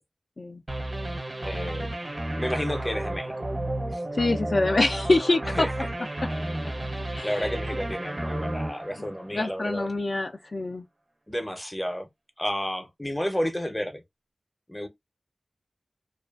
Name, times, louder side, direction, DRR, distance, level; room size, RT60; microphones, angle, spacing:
sound 1, 0.7-9.7, right 1 dB, 35° right, 0.4 m, -32 dB
voice 1, 1.4-1.9 2.4-3.4 3.9-4.0 5.4-5.9 7.1-9.9 11.3-12.1 12.4-14.0 14.7-14.9, equal, 15° left, 0.6 m, -31 dB
voice 2, 4.1-5.7 7.1-7.4 9.0-9.1 9.3-10.9, left 2 dB, 55° left, 0.3 m, -25 dB
2.4 x 2.3 x 2.3 m
wide cardioid pair, 75°, 0 cm